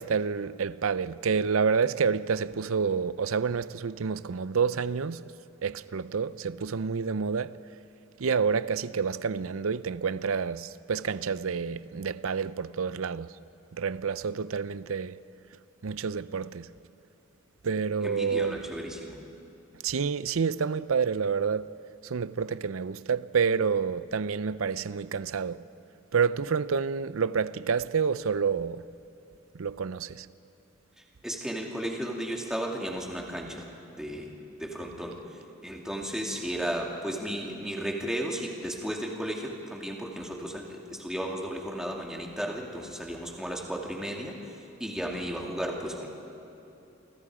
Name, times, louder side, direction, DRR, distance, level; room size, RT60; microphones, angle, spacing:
voice 1, 0.0-5.2 5.6-7.6 8.2-13.4 13.7-15.2 15.8-16.7 17.6-18.6 19.8-21.7 22.0-25.7 26.1-28.8 29.5-30.3, right 6 dB, 70° right, 0.5 m, -28 dB
voice 2, 18.0-19.2 31.2-33.7 34.0-34.3 34.6-35.2 35.6-44.4 44.8-46.1, equal, 5° right, 2.5 m, -34 dB
29.0 x 24.5 x 5.0 m
head